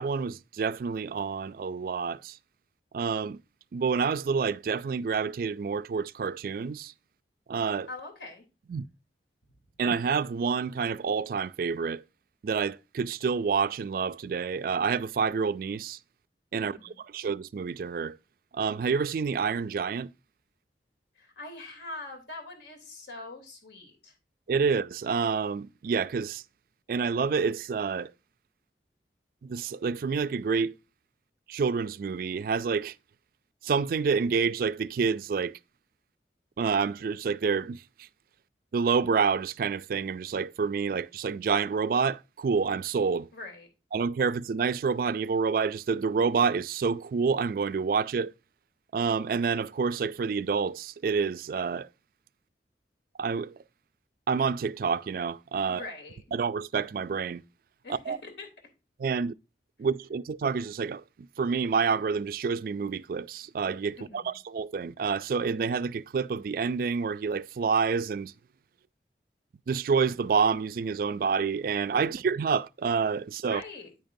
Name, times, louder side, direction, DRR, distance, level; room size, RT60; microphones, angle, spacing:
voice 1, 0.0-2.4 2.9-3.4 3.7-6.9 7.5-7.9 8.7-8.9 9.8-12.0 12.4-16.0 16.5-18.2 18.5-20.1 24.5-26.4 26.9-28.1 29.4-30.7 31.5-33.0 33.6-35.6 36.6-38.1 38.7-43.3 43.9-48.3 48.9-51.9 53.2-53.6 54.3-55.8 56.3-57.4 57.9-58.2 59.0-59.3 59.8-68.3 69.7-73.6, right 5 dB, 55° right, 0.3 m, -28 dB
voice 2, 7.9-8.4 16.6-17.0 21.1-24.1 43.3-43.7 55.7-56.2 57.8-58.5 64.0-64.4 72.0-72.2 73.5-73.9, left 2 dB, 85° left, 3.1 m, -43 dB
9.4 x 8.9 x 2.6 m
head